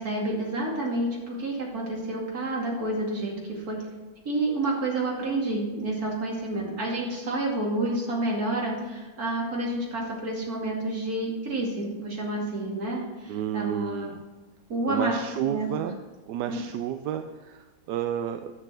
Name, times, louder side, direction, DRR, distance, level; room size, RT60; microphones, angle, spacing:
voice 1, 0.0-3.8 4.2-14.1 14.7-15.7 16.5-16.6, right 2 dB, 65° right, -2 dB, 2.9 m, -29 dB
voice 2, 13.3-14.2 14.8-16.0 16.3-18.5, right 10 dB, 85° right, 8 dB, 1.2 m, -31 dB
10.0 x 7.5 x 7.5 m, 1.2 s
omnidirectional pair, 1.7 m